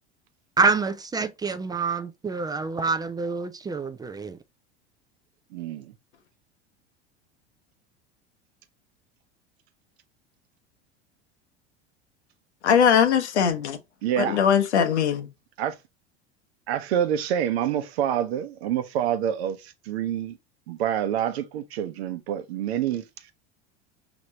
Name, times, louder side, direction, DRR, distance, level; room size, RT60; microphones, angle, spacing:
voice 1, 0.6-4.4, right 4 dB, 10° right, 0.3 m, -26 dB
voice 2, 5.5-5.9 14.0-14.4 15.6-15.7 16.7-20.4 20.7-23.3, right 10 dB, 70° right, 0.8 m, -27 dB
voice 3, 12.6-13.8 14.2-15.3, left 7 dB, 80° left, 0.9 m, -20 dB
5.2 x 2.9 x 2.9 m
hypercardioid pair, 80°, 34 cm